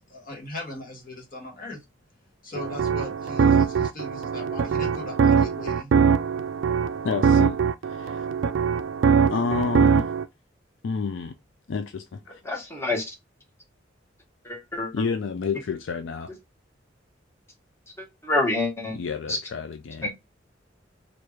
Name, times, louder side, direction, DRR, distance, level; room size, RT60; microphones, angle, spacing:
voice 1, 0.1-1.8 2.4-5.9, left 1 dB, 50° left, 1.8 m, -38 dB
sound 1, 2.6-10.2, right 6 dB, 75° right, 0.4 m, -22 dB
voice 2, 7.0-7.6 8.0-8.2 9.3-10.1 10.8-11.3 11.7-12.4 14.9-16.3 18.9-20.1, left 5 dB, 70° left, 0.4 m, -29 dB
voice 3, 12.4-13.1 14.4-14.9 18.0-19.0 19.3-19.4 20.0-20.1, left 2 dB, 15° left, 1.4 m, -27 dB
4.5 x 2.5 x 3.2 m
head